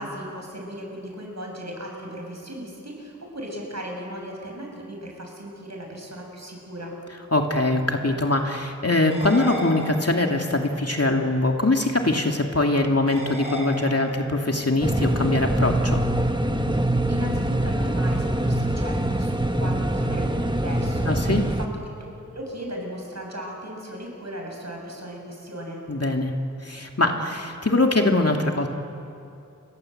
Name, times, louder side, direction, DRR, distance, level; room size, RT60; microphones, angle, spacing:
voice 1, 0.0-7.0 17.1-21.7 22.0-25.8, equal, 55° right, 0 dB, 7.2 m, -36 dB
voice 2, 7.3-16.1 21.1-21.4 25.9-26.3 26.6-28.7, left 2 dB, 50° left, 2 dB, 2.6 m, -22 dB
sound 1, 9.0-10.5 13.1-14.5, equal, 80° right, 5.8 m, -35 dB
sound 2, 14.8-21.7, right 1 dB, 15° right, 1.4 m, -24 dB
29.5 x 23.0 x 7.9 m, 2.6 s
wide cardioid pair, 55°, 31 cm